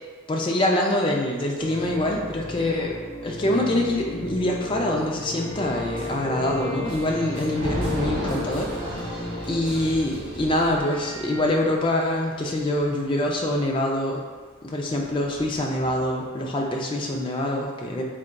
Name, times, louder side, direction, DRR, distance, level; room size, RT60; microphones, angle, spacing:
voice 1, 0.3-2.9 3.2-14.2 14.6-18.0, left 1 dB, 25° left, 0 dB, 0.3 m, -25 dB
sound 1, 1.6-9.9, left 2 dB, 50° right, 1.4 m, -34 dB
sound 2, 5.4-11.5, right 1 dB, 25° right, 0.8 m, -40 dB
Thunder, 6.5-13.6 14.6-16.4, right 1 dB, 85° right, 0.9 m, -35 dB
3.9 x 3.5 x 2.2 m, 1.5 s
head